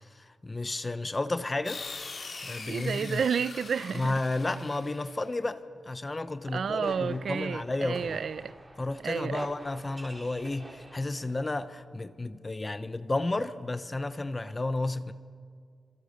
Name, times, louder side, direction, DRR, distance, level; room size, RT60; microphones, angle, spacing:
voice 1, 0.1-1.8 2.4-3.2 3.9-5.6 5.9-8.2 8.8-15.1, left 2 dB, 25° left, 0.9 m, -32 dB
sound 1, 1.6-5.3, left 4 dB, 55° left, 3.9 m, -42 dB
voice 2, 2.7-4.1 6.5-8.5 9.0-9.5, right 6 dB, 75° right, 0.6 m, -31 dB
sound 2, 6.4-11.5, right 1 dB, 15° right, 3.5 m, -48 dB
28.5 x 26.0 x 6.6 m
wide cardioid pair, 110°, 0 cm